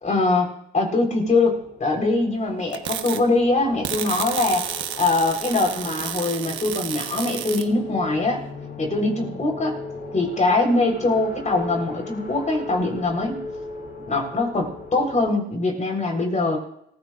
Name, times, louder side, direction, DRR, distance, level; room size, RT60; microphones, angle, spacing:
voice 1, 0.0-4.6 5.0-8.4 8.8-9.8 10.1-13.4 14.1-16.6, left 2 dB, 35° left, 2 dB, 4.2 m, -22 dB
sound 1, 1.2-15.3, left 3 dB, 55° left, 6.7 m, -38 dB
sound 2, 2.7-3.2 3.8-7.7, right 10 dB, 75° right, 1.2 m, -31 dB
25.0 x 15.5 x 2.5 m, 0.73 s
cardioid pair, 90°, 20 cm